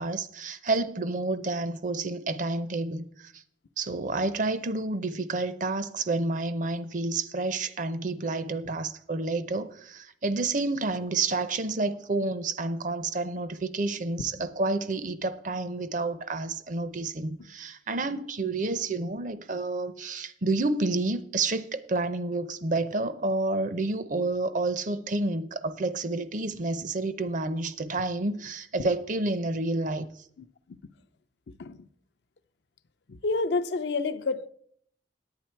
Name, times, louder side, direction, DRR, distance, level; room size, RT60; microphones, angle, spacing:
voice 1, 0.0-3.3 3.8-30.1, right 2 dB, 45° right, 0.6 m, -29 dB
voice 2, 33.2-34.5, left 3 dB, 70° left, 0.5 m, -28 dB
9.8 x 8.9 x 4.5 m
head